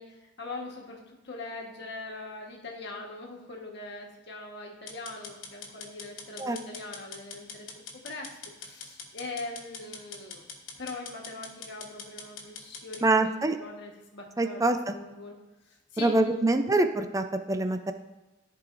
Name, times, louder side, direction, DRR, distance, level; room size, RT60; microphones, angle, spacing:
voice 1, 0.0-7.7 7.9-10.5 10.8-14.6 14.9-15.4 15.6-16.4, left 2 dB, 65° left, 0 dB, 1.4 m, -42 dB
sound 1, 4.9-13.0, left 5 dB, 85° left, 1.2 m, -44 dB
voice 2, 13.0-13.6 14.4-14.9 16.0-17.9, right 2 dB, 15° right, 8 dB, 0.5 m, -25 dB
14.0 x 4.7 x 2.6 m, 1.1 s
head